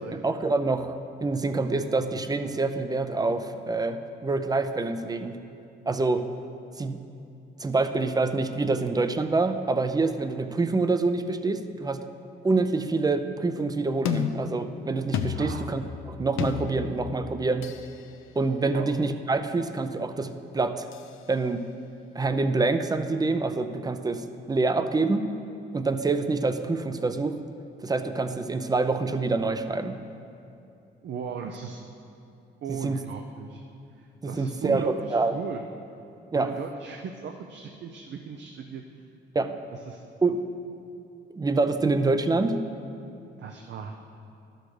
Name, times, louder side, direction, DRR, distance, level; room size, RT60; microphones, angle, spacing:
voice 1, 0.1-5.4 5.9-6.2 6.8-7.0 7.6-12.0 12.4-17.7 18.4-20.9 21.3-21.7 22.1-25.3 25.7-27.4 27.8-30.0 32.7-33.0 34.2-35.3 36.3-36.5 39.3-39.5 40.2-40.4 41.4-42.6, right 3 dB, 20° right, 9 dB, 0.5 m, -26 dB
sound 1, 14.0-17.9 20.9-21.1, left 8 dB, 80° left, 0.6 m, -32 dB
voice 2, 15.3-15.6 18.7-18.9 31.0-31.8 32.6-33.6 33.9-35.6 36.3-38.8 39.7-40.0 43.4-43.9, right 6 dB, 60° right, 4 dB, 0.6 m, -37 dB
11.5 x 6.5 x 4.9 m, 2.6 s
cardioid pair, 90°, 20 cm